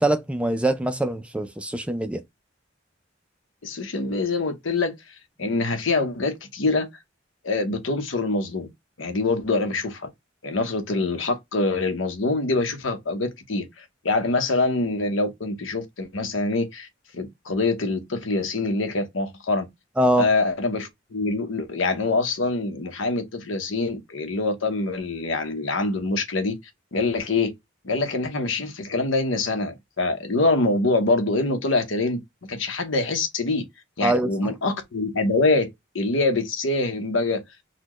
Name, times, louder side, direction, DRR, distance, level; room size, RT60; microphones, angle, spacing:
voice 1, 0.0-2.2 20.0-20.3 34.0-34.3, right 1 dB, 5° right, 0.3 m, -23 dB
voice 2, 3.6-5.0 5.4-6.9 7.4-8.7 9.0-10.1 10.4-16.9 17.1-19.7 20.2-26.6 26.9-27.5 27.8-32.2 32.5-33.6 34.0-35.7 35.9-37.4, left 3 dB, 80° left, 0.9 m, -25 dB
4.1 x 2.2 x 2.9 m
head